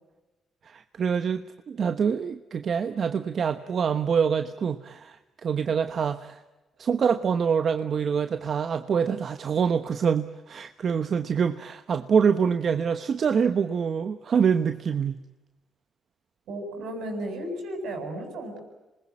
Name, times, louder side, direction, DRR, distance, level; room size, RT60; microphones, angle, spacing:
voice 1, 0.6-6.4 6.8-15.2, right 6 dB, 55° right, 10 dB, 1.1 m, -25 dB
voice 2, 16.5-18.6, right 1 dB, 80° right, 5 dB, 7.9 m, -34 dB
27.0 x 20.5 x 8.7 m, 1.1 s
cardioid pair, 90°, 0 cm